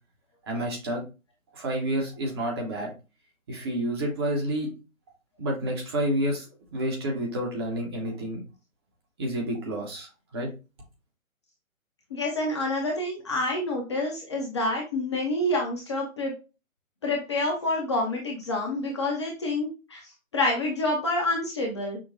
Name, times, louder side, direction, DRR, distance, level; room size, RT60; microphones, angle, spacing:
voice 1, 0.4-1.0 1.5-2.9 3.5-4.7 5.4-8.4 9.2-10.5, right 1 dB, 20° right, 0 dB, 0.8 m, -29 dB
voice 2, 12.1-16.3 17.0-20.0 20.3-22.0, left 2 dB, 20° left, -1 dB, 0.6 m, -27 dB
6.0 x 2.2 x 2.6 m, 0.30 s
figure-of-eight pair, 140°, 42 cm